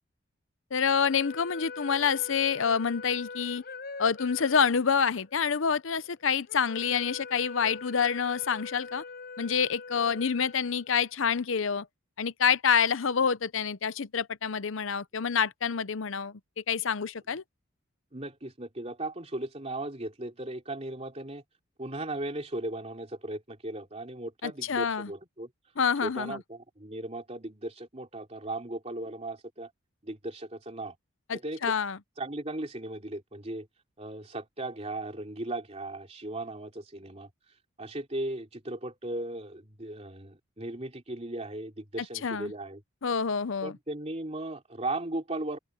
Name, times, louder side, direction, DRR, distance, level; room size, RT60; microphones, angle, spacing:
voice 1, 0.7-3.6 4.0-9.0 9.4-11.9 12.2-16.4 16.7-17.4 24.4-25.1 25.8-26.4 31.3-32.0 42.2-42.5 43.0-43.7, left 6 dB, 65° left, 0.7 m, -27 dB
sound 1, 0.8-11.2, left 4 dB, 50° left, 5.2 m, -43 dB
voice 2, 18.1-21.4 21.8-25.5 26.0-29.7 30.0-30.9 31.3-31.8 32.2-33.7 34.0-37.3 37.8-42.8 43.6-45.6, right 2 dB, 30° right, 3.2 m, -37 dB
open air
head